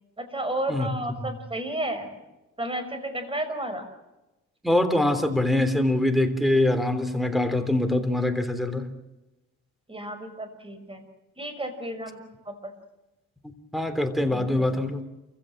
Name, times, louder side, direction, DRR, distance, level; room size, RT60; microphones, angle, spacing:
voice 1, 0.2-2.2 2.6-3.8 9.9-11.0 11.4-12.7 14.3-14.8, right 1 dB, 20° right, 8 dB, 5.6 m, -32 dB
voice 2, 4.6-8.9 13.7-15.0, left 1 dB, ahead, 10 dB, 3.4 m, -23 dB
28.5 x 16.0 x 7.6 m, 1.0 s
cardioid pair, 90°, 30 cm